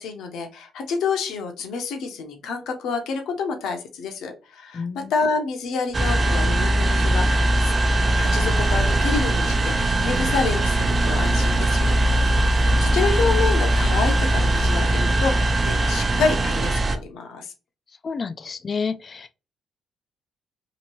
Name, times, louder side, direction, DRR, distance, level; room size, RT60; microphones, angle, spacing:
voice 1, 0.0-7.7 8.1-12.5 12.8-17.5, left 4 dB, 80° left, 0.8 m, -28 dB
voice 2, 4.7-5.1 18.0-19.3, left 5 dB, 40° left, 0.3 m, -30 dB
sound 1, 5.9-17.0, right 1 dB, 35° right, 0.4 m, -20 dB
sound 2, 8.1-14.7, right 1 dB, 75° right, 0.9 m, -32 dB
2.8 x 2.6 x 2.9 m
cardioid pair, 90°, 0 cm